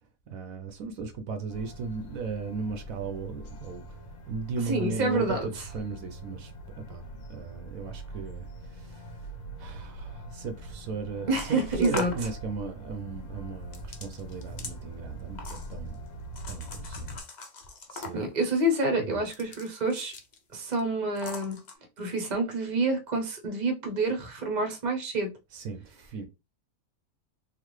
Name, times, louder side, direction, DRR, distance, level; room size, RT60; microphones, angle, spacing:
voice 1, 0.3-7.0 7.3-9.3 9.6-16.0 16.5-17.2 17.9-18.3 19.0-19.2 25.5-26.3, right 4 dB, 70° right, 1.0 m, -36 dB
sound 1, 1.5-17.2, right 1 dB, 65° left, 1.5 m, -43 dB
voice 2, 4.7-5.5 11.3-12.1 18.1-20.1 20.5-21.6 22.0-25.3, right 2 dB, 35° right, 0.8 m, -28 dB
sound 2, 11.3-12.3 13.7-14.8 15.4-15.9 16.4-18.4 19.2-20.4 20.7-20.8 21.2-21.7, left 4 dB, 45° left, 0.6 m, -41 dB
3.9 x 2.5 x 3.1 m
omnidirectional pair, 1.5 m